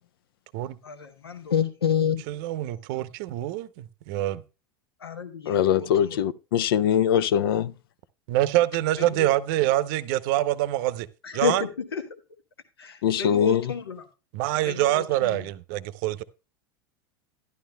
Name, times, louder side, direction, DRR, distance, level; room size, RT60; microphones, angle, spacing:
voice 1, 0.8-2.2 5.0-6.2 9.0-9.3 11.2-12.0 12.8-14.1 14.6-15.5, left 7 dB, 90° left, 1.2 m, -29 dB
voice 2, 2.4-4.4 8.3-11.1 11.3-11.6 14.3-16.2, right 15 dB, 60° right, 0.7 m, -25 dB
voice 3, 5.5-7.7 13.0-13.6, left 9 dB, 70° left, 0.5 m, -22 dB
11.5 x 11.5 x 2.2 m
hypercardioid pair, 85°, 12 cm